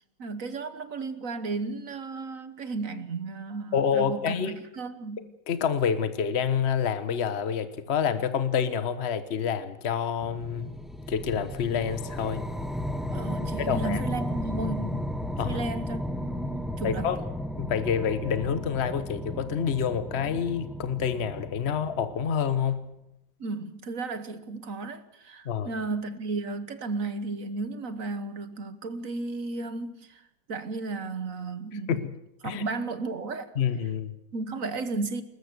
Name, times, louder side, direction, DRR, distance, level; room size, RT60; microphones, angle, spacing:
voice 1, 0.2-5.2 13.1-15.0 15.4-17.1 23.4-31.9 32.4-33.5 34.3-35.2, right 3 dB, 45° right, 1.4 m, -34 dB
voice 2, 3.7-4.5 5.5-10.7 11.1-12.5 13.7-14.0 15.4-15.6 16.8-17.2 17.6-22.8 25.4-25.7 31.9-32.1 32.4-32.6 33.6-34.1, left 7 dB, 35° left, 1.3 m, -27 dB
sound 1, 10.2-22.7, left 1 dB, ahead, 0.9 m, -34 dB
21.5 x 20.5 x 6.8 m
omnidirectional pair, 2.1 m